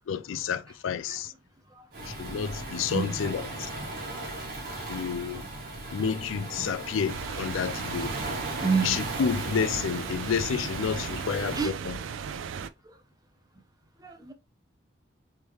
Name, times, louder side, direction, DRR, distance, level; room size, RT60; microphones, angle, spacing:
voice 1, 0.1-1.3 2.0-3.7 4.9-5.5 5.9-8.1 8.8-11.6, left 6 dB, 90° left, 0.4 m, -30 dB
Waves surf, 1.9-11.7, right 2 dB, 50° right, 1.3 m, -37 dB
voice 2, 2.9-3.2 4.1-4.3 5.0-5.7 8.6-9.0 11.3-12.0 12.8-13.0 14.0-14.3, right 5 dB, 20° right, 0.6 m, -32 dB
sound 1, 7.1-12.7, right 6 dB, 80° right, 0.4 m, -37 dB
3.5 x 3.1 x 3.0 m
head